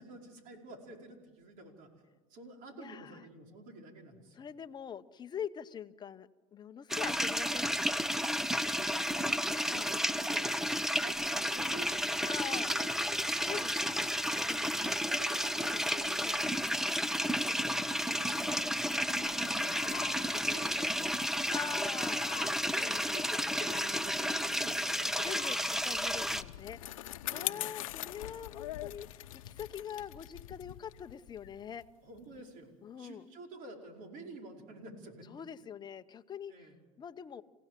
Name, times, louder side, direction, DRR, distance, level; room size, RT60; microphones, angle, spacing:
voice 1, 0.0-1.9 2.3-4.4 8.3-12.1 12.4-13.3 14.4-18.5 19.2-21.4 22.7-25.5 27.3-27.6 32.0-32.7 33.0-35.2 36.5-36.8, right 3 dB, 55° right, 2 dB, 5.0 m, -50 dB
voice 2, 2.8-3.3 4.3-8.1 9.7-9.9 12.2-12.7 13.4-14.1 14.5-14.6 16.2-16.4 18.5-19.0 21.5-22.3 22.8-23.3 25.0-31.8 32.8-33.3 35.3-36.7 37.0-37.4, left 8 dB, 25° left, 10 dB, 0.9 m, -44 dB
sound 1, 6.9-26.4, equal, ahead, 0.8 m, -32 dB
sound 2, 18.4-25.9, left 16 dB, 60° left, 1.2 m, -50 dB
Bicycle, 25.7-32.4, left 15 dB, 85° left, 0.9 m, -42 dB
28.5 x 16.5 x 7.6 m, 1.3 s
supercardioid pair, 105°, 17 cm